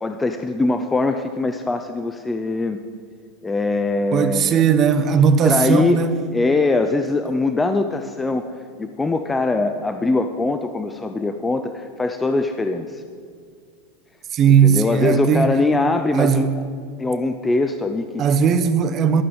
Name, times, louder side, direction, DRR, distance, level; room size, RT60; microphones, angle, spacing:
voice 1, 0.0-2.8 3.4-4.6 5.4-6.0 6.3-8.4 8.8-13.0 14.5-16.5 17.0-18.2, left 3 dB, 10° left, 8 dB, 0.7 m, -22 dB
voice 2, 4.1-6.1 14.3-15.5 16.1-16.5 18.2-19.2, right 7 dB, 35° right, 10 dB, 1.0 m, -17 dB
12.5 x 11.5 x 8.1 m, 2.1 s
supercardioid pair, 125°, 0 cm